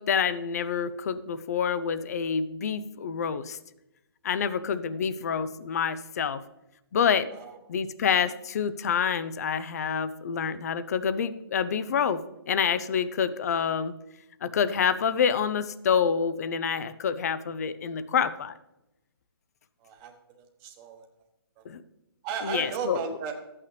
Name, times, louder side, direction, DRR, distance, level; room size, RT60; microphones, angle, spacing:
voice 1, 0.0-3.6 4.2-6.4 6.9-7.3 7.7-13.9 14.4-18.5 21.6-21.8 22.4-23.0, left 7 dB, 40° left, 14 dB, 0.6 m, -27 dB
voice 2, 19.8-21.0 21.6-21.7 22.2-23.3, right 6 dB, 20° right, 3 dB, 1.2 m, -35 dB
12.5 x 8.7 x 3.3 m, 0.93 s
hypercardioid pair, 165°, 13 cm